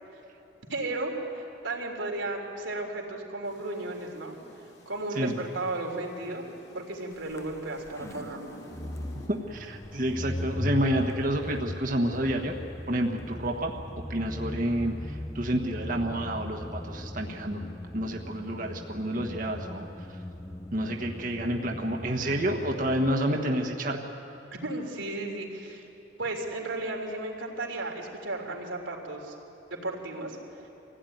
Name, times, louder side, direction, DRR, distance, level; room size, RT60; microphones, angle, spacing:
voice 1, 0.7-4.4 4.9-6.4 6.7-8.6 21.7-21.8 24.6-25.9 26.2-29.3 29.7-30.4 30.6-30.7, right 2 dB, 90° right, 0 dB, 3.5 m, -34 dB
sound 1, 3.4-9.3, equal, 60° left, 2.7 m, -50 dB
sound 2, 7.3-23.1, left 1 dB, 15° left, 0.5 m, -39 dB
voice 2, 9.3-12.6 12.9-13.7 14.1-17.6 17.9-20.2 20.7-24.0, right 1 dB, 45° right, 1 dB, 1.5 m, -29 dB
25.5 x 16.5 x 9.4 m, 3.0 s
head